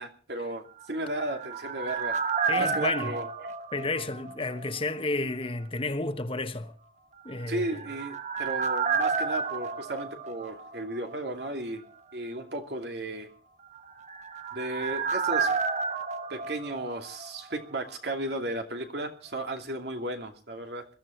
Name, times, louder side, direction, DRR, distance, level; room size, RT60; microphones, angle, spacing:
voice 1, 0.0-2.2 2.6-3.3 7.5-11.8 12.1-13.3 14.5-15.5 16.3-20.9, right 1 dB, 70° right, 2.6 m, -34 dB
sound 1, 0.8-4.7 4.9-5.0 7.4-11.1 11.4-11.5 13.8-17.6 17.9-18.0, right 5 dB, 40° right, 1.3 m, -31 dB
voice 2, 2.5-3.2 3.7-6.7 7.2-7.8, left 2 dB, 30° left, 1.2 m, -31 dB
21.0 x 13.5 x 4.4 m
head